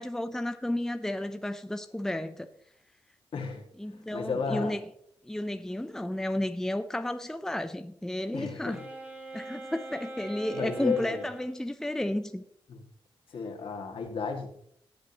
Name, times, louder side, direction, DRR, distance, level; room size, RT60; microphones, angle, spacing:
voice 1, 0.0-2.5 3.8-4.8 5.2-8.8 9.3-12.4, left 1 dB, 5° left, 0.6 m, -32 dB
voice 2, 3.3-3.6 4.1-4.7 8.3-8.8 10.5-11.3 12.7-12.8 13.3-14.5, left 5 dB, 65° left, 2.2 m, -33 dB
Wind instrument woodwind instrument, 8.7-11.6, right 1 dB, 20° right, 3.0 m, -42 dB
17.5 x 7.7 x 3.0 m
cardioid pair, 100°, 10 cm